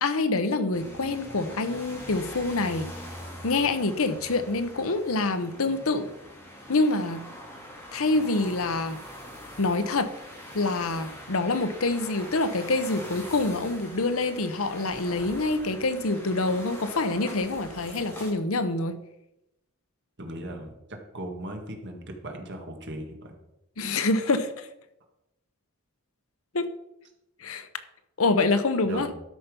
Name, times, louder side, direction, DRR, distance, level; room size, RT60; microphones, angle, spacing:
voice 1, 0.0-2.9 3.4-6.1 6.7-7.2 7.9-9.0 9.6-10.1 10.5-19.0 23.8-24.7 26.5-26.7 27.4-27.7 28.2-29.1, left 3 dB, 70° left, 10 dB, 0.9 m, -26 dB
sound 1, 0.7-18.3, equal, 10° left, 2.3 m, -43 dB
voice 2, 20.2-23.4 28.8-29.1, right 1 dB, 55° right, 3 dB, 1.8 m, -38 dB
12.5 x 5.6 x 5.3 m, 0.88 s
head